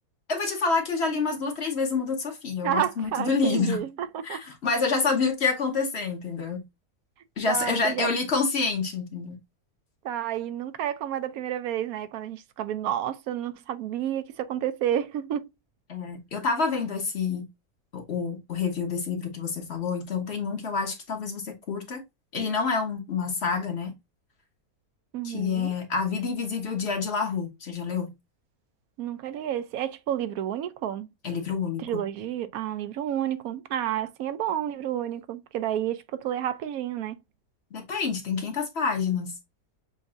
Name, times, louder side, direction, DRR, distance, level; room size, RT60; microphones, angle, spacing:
voice 1, 0.3-3.8 4.2-6.6 7.4-9.4 15.9-17.5 17.9-22.0 22.3-23.9 25.2-28.1 31.2-32.0 37.7-39.3, left 4 dB, 50° left, 1.4 m, -28 dB
voice 2, 2.6-4.4 7.5-8.1 10.0-15.5 25.1-25.7 29.0-31.1 31.8-37.2, right 11 dB, 80° right, 1.1 m, -30 dB
7.0 x 2.7 x 2.4 m
omnidirectional pair, 1.5 m